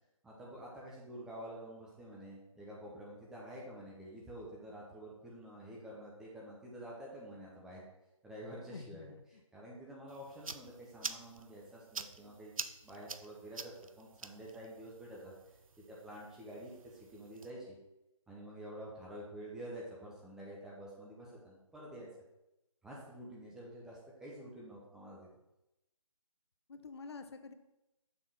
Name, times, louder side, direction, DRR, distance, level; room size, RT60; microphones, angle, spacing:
voice 1, 0.2-7.8 8.2-9.1 9.5-12.5 12.8-15.3 15.9-17.8 18.3-22.1 22.8-25.3, right 1 dB, 5° right, -5 dB, 0.5 m, -48 dB
voice 2, 8.7-9.4 26.7-27.5, left 4 dB, 50° left, 9 dB, 0.6 m, -48 dB
sound 1, 10.1-17.5, right 4 dB, 85° right, 0.5 m, -47 dB
6.6 x 3.6 x 5.8 m, 0.92 s
figure-of-eight pair, 145°, 17 cm